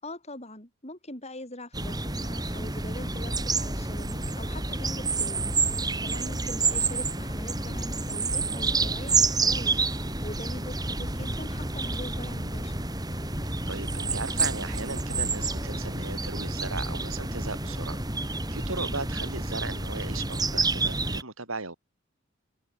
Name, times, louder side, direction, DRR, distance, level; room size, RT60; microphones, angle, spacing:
voice 1, 0.0-5.5 6.0-9.9 10.2-12.7, left 1 dB, 30° left, 7.9 m, -42 dB
sound 1, 1.7-21.2, right 3 dB, 20° right, 5.6 m, -29 dB
voice 2, 13.7-18.0 18.5-21.8, right 3 dB, 85° right, 5.8 m, -37 dB
open air
head